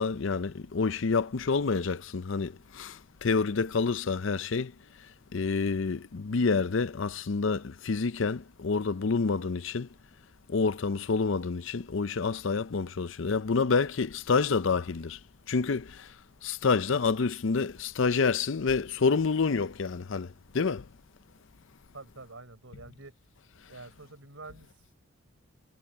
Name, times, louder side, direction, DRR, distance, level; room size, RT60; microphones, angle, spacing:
voice 1, 0.0-4.7 5.3-9.9 10.5-15.2 15.5-16.1 16.4-20.9, left 4 dB, 65° left, 0.6 m, -28 dB
voice 2, 21.9-23.1 23.7-25.0, right 3 dB, 70° right, 4.5 m, -48 dB
head